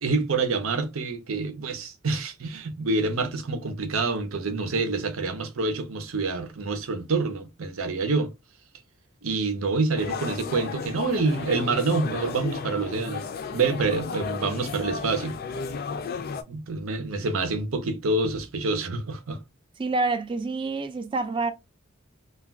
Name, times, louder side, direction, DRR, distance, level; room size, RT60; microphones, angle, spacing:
voice 1, 0.0-8.3 9.2-13.2 13.5-15.3 16.5-19.4, right 3 dB, 75° right, 0.7 m, -27 dB
sound 1, 10.0-16.4, left 5 dB, 45° left, 0.4 m, -34 dB
voice 2, 19.8-21.5, right 3 dB, 25° right, 0.3 m, -27 dB
2.3 x 2.2 x 3.4 m
head